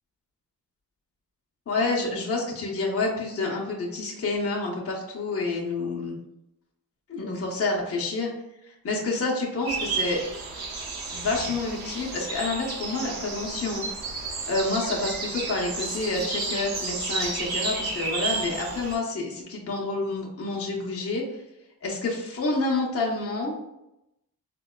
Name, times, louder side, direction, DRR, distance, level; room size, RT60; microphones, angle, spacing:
voice 1, 1.7-6.2 7.1-8.3 8.6-10.2 11.1-13.8 14.5-21.4 21.8-23.5, left 3 dB, 40° left, -3 dB, 0.7 m, -28 dB
sound 1, 9.7-19.0, right 4 dB, 80° right, 0.9 m, -32 dB
4.0 x 2.2 x 2.3 m, 0.88 s
wide cardioid pair, 90°, 36 cm